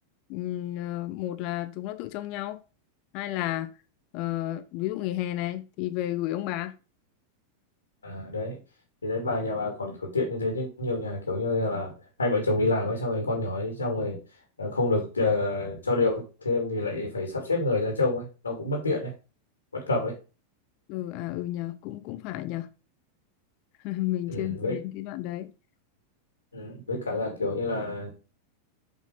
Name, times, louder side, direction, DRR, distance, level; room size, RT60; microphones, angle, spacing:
voice 1, 0.3-2.6 3.1-3.7 4.1-6.7 20.9-22.7 23.8-25.5, left 15 dB, 45° left, 0.8 m, -32 dB
voice 2, 8.0-8.6 9.0-14.2 14.6-19.1 19.7-20.2 24.3-24.8 26.5-28.1, left 2 dB, 75° left, 2.6 m, -28 dB
7.5 x 5.3 x 5.0 m
figure-of-eight pair, 90°, 0 cm